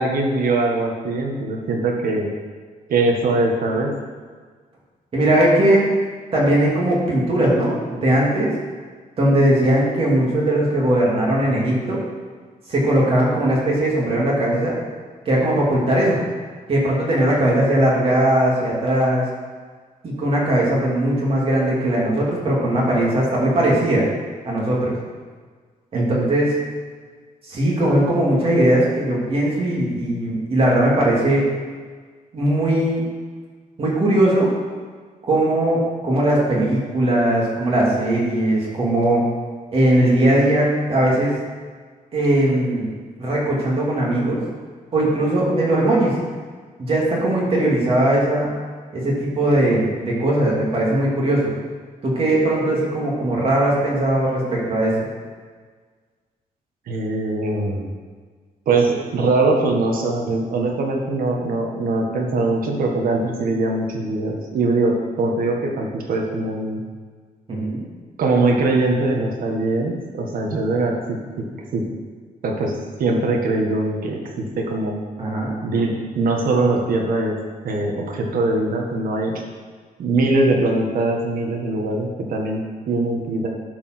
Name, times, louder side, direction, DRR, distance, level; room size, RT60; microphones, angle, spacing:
voice 1, 0.0-2.3 2.9-4.0 25.9-26.3 56.9-57.9 58.6-66.8 68.2-71.5 71.7-71.8 72.4-75.0 75.6-77.4 77.6-79.4 80.0-83.5, right 2 dB, 75° right, 1 dB, 1.6 m, -22 dB
voice 2, 5.1-5.9 6.3-8.5 9.2-12.0 12.7-14.7 15.3-16.2 16.7-19.2 20.0-24.1 24.4-24.9 25.9-26.5 27.4-31.4 32.3-33.0 33.8-34.5 35.3-39.2 39.7-41.3 42.1-42.9 43.2-44.4 44.9-46.1 46.8-48.5 48.9-51.5 52.0-54.9 67.5-67.8 75.2-75.5, right 1 dB, 40° right, -4 dB, 2.8 m, -19 dB
12.0 x 5.0 x 6.1 m, 1.6 s
wide cardioid pair, 180°, 15 cm